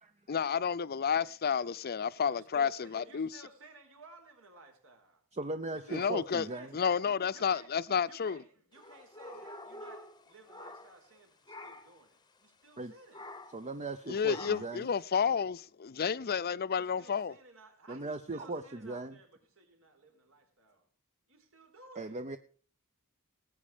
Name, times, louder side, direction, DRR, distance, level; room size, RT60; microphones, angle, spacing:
voice 1, 0.3-3.3 5.9-6.5 6.7-8.4 14.1-17.3, left 6 dB, 45° left, 0.5 m, -31 dB
voice 2, 2.3-5.2 5.7-7.1 7.3-7.7 8.1-13.3 16.7-20.9 21.3-22.2, right 3 dB, 65° right, 4.4 m, -56 dB
voice 3, 5.3-6.8 12.8-12.9 13.5-14.9 17.9-19.2 22.0-22.4, right 2 dB, 30° right, 0.7 m, -38 dB
sound 1, 8.8-11.2 11.5-12.0 13.1-13.7 14.3-14.8, left 1 dB, 20° left, 1.0 m, -48 dB
19.0 x 8.6 x 5.1 m
head